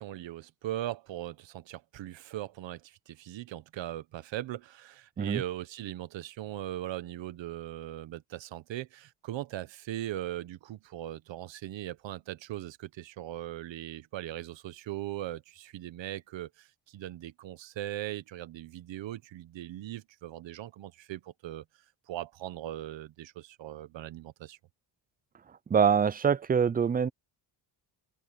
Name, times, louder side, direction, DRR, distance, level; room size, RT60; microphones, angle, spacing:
voice 1, 0.0-21.6 22.1-24.6, right 13 dB, 70° right, 1.2 m, -39 dB
voice 2, 25.7-27.1, right 7 dB, 20° right, 0.4 m, -24 dB
cardioid pair, 140°, 46 cm